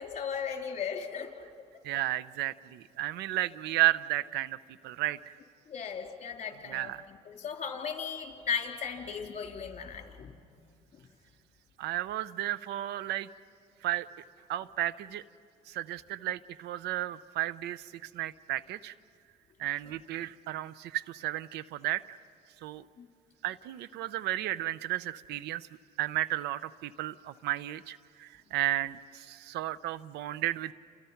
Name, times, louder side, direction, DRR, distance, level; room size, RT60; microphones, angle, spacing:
voice 1, 0.0-1.5 5.7-10.4 10.9-11.1 23.0-23.1, left 7 dB, 45° left, 2 dB, 3.7 m, -37 dB
voice 2, 1.8-4.6 4.8-5.3 6.7-7.0 11.8-13.3 13.8-14.1 14.5-15.2 15.7-17.9 18.1-18.9 19.6-22.0 22.6-22.8 23.4-25.7 26.0-30.7, right 15 dB, 80° right, 17 dB, 0.7 m, -33 dB
30.0 x 28.0 x 5.9 m, 2.2 s
cardioid pair, 110°, 17 cm